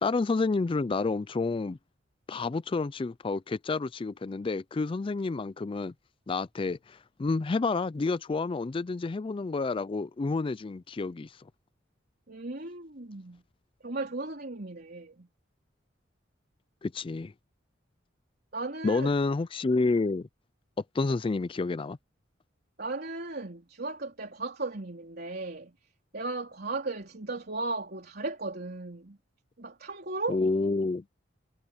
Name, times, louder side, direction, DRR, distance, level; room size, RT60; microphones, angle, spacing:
voice 1, 0.0-1.8 2.3-5.9 6.3-11.3 16.8-17.3 18.8-20.3 20.9-22.0 30.3-31.0, left 3 dB, 30° left, 0.4 m, -29 dB
voice 2, 12.3-13.4 13.8-15.3 18.5-19.1 22.8-25.7 26.1-29.2 29.6-30.4, right 3 dB, 55° right, 3.7 m, -36 dB
head